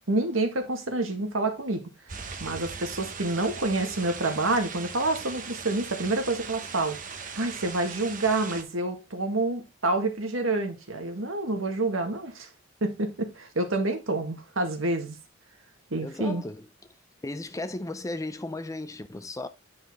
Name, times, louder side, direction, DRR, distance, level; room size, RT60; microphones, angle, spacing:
voice 1, 0.1-1.8 2.4-12.5 12.8-15.2 15.9-16.4, right 2 dB, 75° right, 1.8 m, -28 dB
sound 1, 2.1-8.6, right 5 dB, 40° right, 1.1 m, -39 dB
voice 2, 16.0-16.7 17.2-19.5, left 2 dB, 15° left, 0.5 m, -35 dB
9.3 x 5.6 x 3.6 m
head